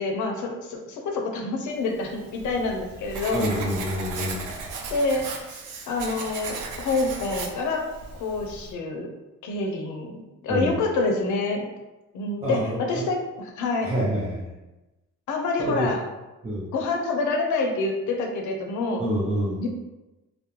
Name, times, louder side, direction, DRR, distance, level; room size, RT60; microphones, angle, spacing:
voice 1, 0.0-3.5 4.9-5.6 5.9-7.8 8.2-9.1 9.4-11.7 12.1-13.9 15.3-16.0 16.7-19.0 19.6-19.7, left 3 dB, 75° left, 2 dB, 0.6 m, -27 dB
Writing, 2.0-8.7, right 4 dB, 80° right, 0.5 m, -36 dB
voice 2, 3.3-4.5 10.5-10.8 12.4-13.0 13.8-14.5 15.6-15.9 16.4-16.7 19.0-19.6, equal, 20° right, -8 dB, 0.6 m, -27 dB
2.3 x 2.0 x 2.9 m, 1.1 s
cardioid pair, 90°, 30 cm